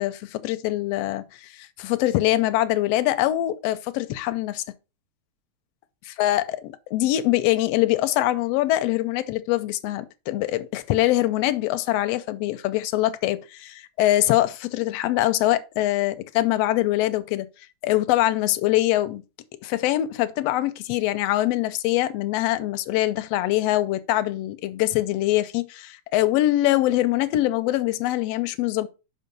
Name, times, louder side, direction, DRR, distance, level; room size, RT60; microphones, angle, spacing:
voice 1, 0.0-4.6 6.2-17.5 17.8-19.2 19.6-28.9, left 15 dB, 80° left, 1.6 m, -23 dB
5.7 x 5.6 x 5.2 m
omnidirectional pair, 3.3 m